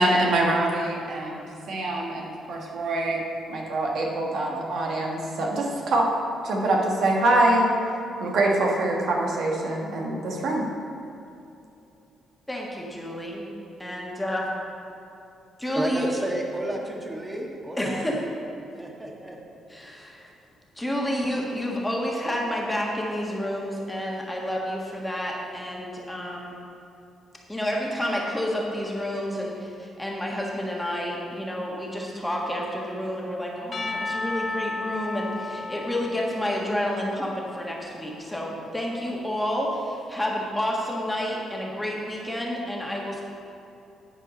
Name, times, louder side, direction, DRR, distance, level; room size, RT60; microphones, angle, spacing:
voice 1, 0.0-3.2 3.5-6.1 6.4-7.7 8.2-10.6, right 1 dB, 65° right, -1 dB, 1.3 m, -24 dB
voice 2, 12.5-13.4 13.8-14.4 15.6-16.1 17.8-18.2 19.7-20.3 20.7-26.6 27.5-43.2, equal, 5° left, -2 dB, 1.5 m, -29 dB
voice 3, 15.7-18.0 18.8-19.4, right 1 dB, 15° right, 0 dB, 1.4 m, -31 dB
Percussion / Church bell, 33.7-37.9, left 3 dB, 45° left, 1.0 m, -34 dB
10.5 x 4.9 x 5.2 m, 2.8 s
cardioid pair, 90°, 0 cm